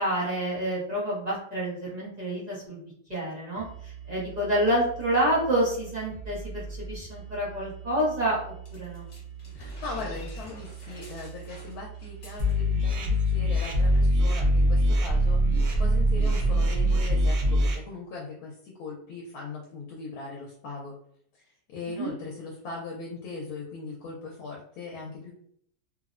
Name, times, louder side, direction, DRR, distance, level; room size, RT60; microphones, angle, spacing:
voice 1, 0.0-2.8 3.1-8.4 8.7-9.0 21.9-22.1, right 1 dB, 35° right, -8 dB, 0.7 m, -28 dB
sound 1, 3.5-17.3, right 4 dB, 35° left, 0.9 m, -42 dB
sound 2, 8.7-12.9 13.1-13.3 13.6-14.0, left 2 dB, 55° left, 1.3 m, -49 dB
voice 2, 9.5-20.9 21.3-25.3, left 3 dB, 80° left, -1 dB, 1.1 m, -39 dB
sound 3, 12.4-17.7, equal, 70° right, 0.6 m, -23 dB
3.0 x 2.0 x 2.4 m, 0.67 s
omnidirectional pair, 1.6 m